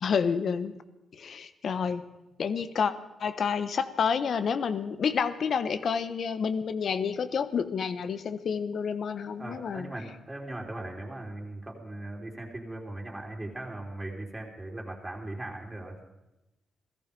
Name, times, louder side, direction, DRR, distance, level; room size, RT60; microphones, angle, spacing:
voice 1, 0.0-0.8 1.1-2.1 2.4-2.9 3.2-9.9, left 6 dB, 65° left, 12 dB, 1.1 m, -29 dB
voice 2, 9.4-15.9, right 1 dB, 20° right, -1 dB, 3.7 m, -39 dB
17.0 x 14.5 x 5.4 m, 0.96 s
cardioid pair, 70°, 0 cm